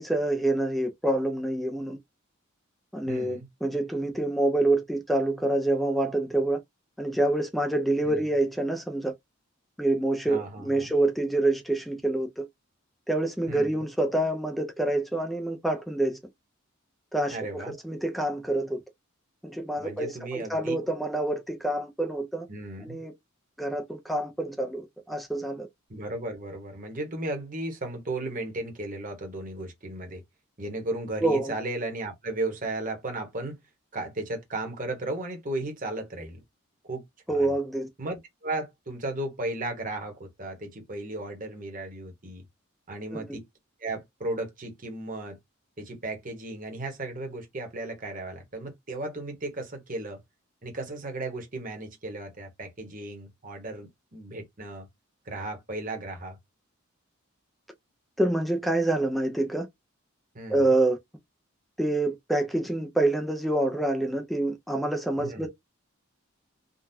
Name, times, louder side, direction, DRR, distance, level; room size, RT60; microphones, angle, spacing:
voice 1, 0.0-2.0 2.9-6.6 7.0-9.1 9.8-12.5 13.1-16.2 17.1-18.8 19.4-22.5 22.8-23.1 23.6-25.7 31.2-31.5 37.3-37.9 43.1-43.4 58.2-59.7 60.5-61.0 61.8-65.5, right 1 dB, ahead, 0.5 m, -27 dB
voice 2, 3.1-3.5 8.0-8.2 10.3-10.9 13.5-13.8 17.3-17.7 19.8-20.8 22.5-23.0 25.9-30.2 30.6-33.5 33.9-36.4 36.8-37.5 38.0-42.4 42.9-43.4 43.8-45.4 45.8-50.2 50.6-54.9 55.2-56.4 60.3-60.8 65.2-65.5, right 2 dB, 40° right, 1.2 m, -35 dB
3.8 x 2.3 x 2.7 m
head